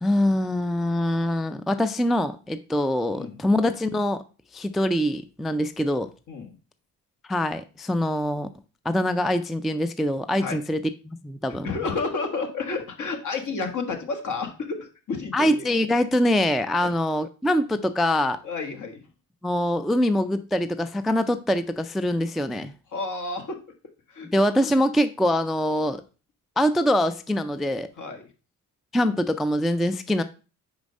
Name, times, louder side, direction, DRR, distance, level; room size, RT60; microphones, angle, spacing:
voice 1, 0.0-4.2 4.5-6.1 7.3-8.5 8.9-11.7 15.3-18.4 19.4-22.7 24.3-26.0 26.6-27.9 28.9-30.2, left 1 dB, ahead, 0.3 m, -24 dB
voice 2, 11.6-15.6 16.8-16.9 18.4-19.0 22.9-23.6 24.1-24.3 28.0-28.3, left 4 dB, 60° left, 1.5 m, -31 dB
5.1 x 4.9 x 5.2 m
cardioid pair, 90°, 35 cm